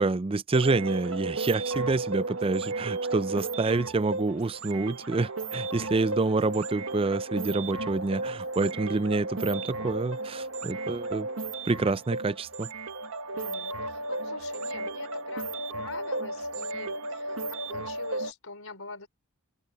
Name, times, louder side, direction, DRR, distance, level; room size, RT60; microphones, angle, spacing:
voice 1, 0.0-11.3 11.6-12.7, right 3 dB, 25° right, 0.4 m, -27 dB
sound 1, 0.5-18.3, right 2 dB, 70° right, 1.5 m, -34 dB
voice 2, 13.3-19.1, left 3 dB, 70° left, 4.0 m, -45 dB
open air
head